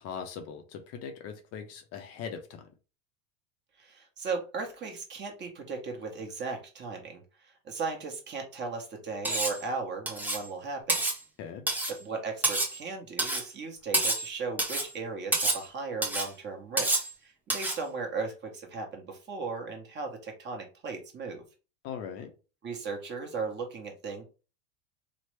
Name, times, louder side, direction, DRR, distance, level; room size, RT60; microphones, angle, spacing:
voice 1, 0.0-2.7 11.4-11.6 21.8-22.3, left 7 dB, 40° left, 0.5 m, -40 dB
voice 2, 3.8-11.0 11.9-21.4 22.6-24.2, right 4 dB, 30° right, 1.0 m, -37 dB
Cutlery silverware, 9.2-9.6 10.1-10.5 10.9-11.2 11.7-12.0 12.4-12.8 13.2-13.5 13.9-14.3 14.6-14.9 15.3-15.6 16.0-16.3 16.8-17.1 17.5-17.8, right 2 dB, 5° right, 0.5 m, -28 dB
3.1 x 2.0 x 3.1 m
supercardioid pair, 125°, 37 cm